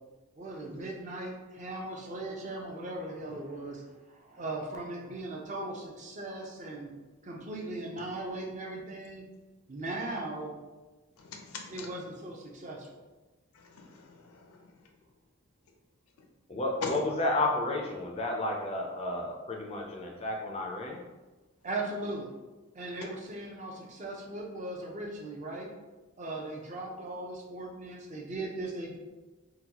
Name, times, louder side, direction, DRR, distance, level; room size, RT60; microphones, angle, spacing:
voice 1, 0.4-6.9 7.2-9.2 9.7-10.6 11.7-13.0 21.6-22.3 22.7-25.7 26.2-29.0, right 2 dB, 35° right, -1 dB, 0.5 m, -38 dB
voice 2, 11.2-11.9 13.5-14.7 16.8-17.0 23.0-23.1, left 4 dB, 90° left, 2 dB, 0.5 m, -40 dB
voice 3, 16.5-21.0, left 2 dB, 30° left, 0 dB, 0.4 m, -31 dB
3.8 x 2.2 x 2.8 m, 1.2 s
head